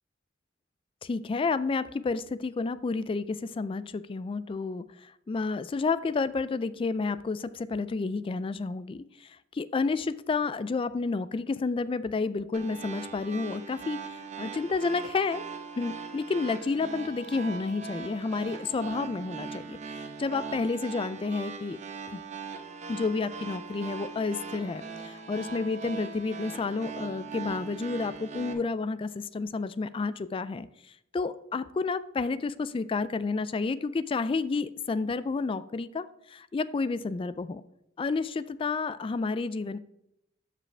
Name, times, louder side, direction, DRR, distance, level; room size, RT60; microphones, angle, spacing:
voice 1, 1.0-15.4 15.8-21.8 22.1-22.2 22.9-30.7 31.1-37.6 38.0-39.8, left 4 dB, 30° left, 15 dB, 0.3 m, -30 dB
sound 1, 12.5-28.5, right 5 dB, 40° right, 0.9 m, -40 dB
13.0 x 5.0 x 3.3 m, 0.81 s
head